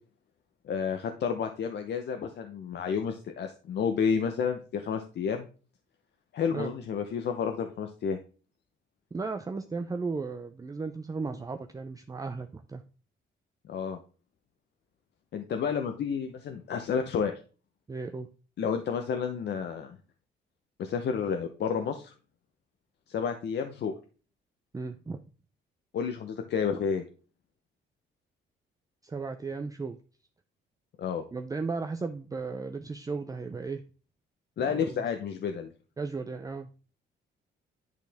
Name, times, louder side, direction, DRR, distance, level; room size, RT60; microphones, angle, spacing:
voice 1, 0.6-5.5 6.3-8.2 13.7-14.0 15.3-17.4 18.6-20.0 20.8-22.1 23.1-23.9 25.9-27.0 31.0-31.2 34.6-35.7, left 6 dB, 60° left, 6 dB, 0.8 m, -30 dB
voice 2, 9.1-12.8 17.9-18.3 24.7-25.2 29.0-30.0 31.3-33.8 34.6-35.0 36.0-36.7, right 4 dB, 15° right, 7 dB, 0.5 m, -35 dB
10.5 x 4.1 x 3.5 m, 0.38 s
cardioid pair, 90°, 20 cm